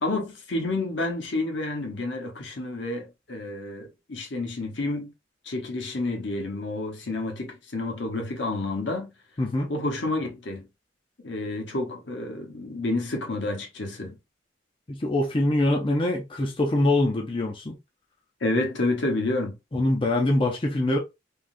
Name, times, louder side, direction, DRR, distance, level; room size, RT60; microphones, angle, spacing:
voice 1, 0.0-5.1 5.5-9.1 9.7-10.6 11.2-14.2 18.4-19.5, left 2 dB, 70° left, 0.9 m, -29 dB
voice 2, 9.4-9.7 14.9-17.8 19.7-21.0, left 1 dB, 30° left, 0.5 m, -24 dB
3.5 x 2.3 x 2.5 m
head